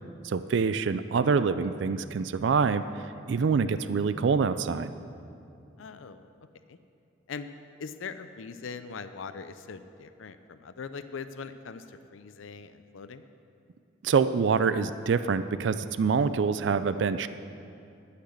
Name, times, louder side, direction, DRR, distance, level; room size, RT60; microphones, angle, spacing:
voice 1, 0.2-4.9 14.0-17.3, right 5 dB, 65° right, 12 dB, 0.4 m, -26 dB
voice 2, 5.8-6.8 7.3-7.5 7.8-13.2, left 5 dB, 90° left, 10 dB, 0.5 m, -41 dB
11.5 x 5.9 x 8.0 m, 2.7 s
head